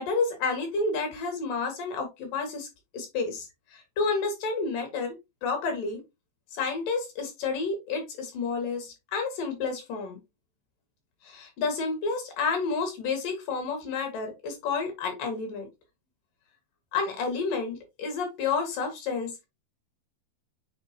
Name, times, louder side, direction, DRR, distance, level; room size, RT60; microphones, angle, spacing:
voice 1, 0.0-2.7 2.9-5.2 5.4-6.0 6.5-10.2 11.2-15.7 16.9-19.3, left 4 dB, 65° left, 3.7 m, -30 dB
7.7 x 4.3 x 2.9 m
omnidirectional pair, 4.3 m